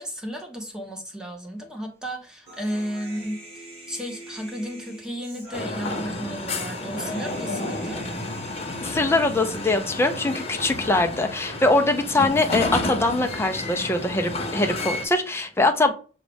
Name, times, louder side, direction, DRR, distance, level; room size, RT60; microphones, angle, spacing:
voice 1, 0.0-8.0, equal, 5° right, 1 dB, 0.9 m, -33 dB
Human voice, 2.5-10.5, right 1 dB, 35° right, 2.0 m, -44 dB
sound 1, 5.5-15.0, left 2 dB, 35° left, 1.0 m, -31 dB
voice 2, 8.8-15.9, left 2 dB, 15° left, 4 dB, 0.5 m, -22 dB
6.2 x 2.4 x 3.4 m, 0.37 s
head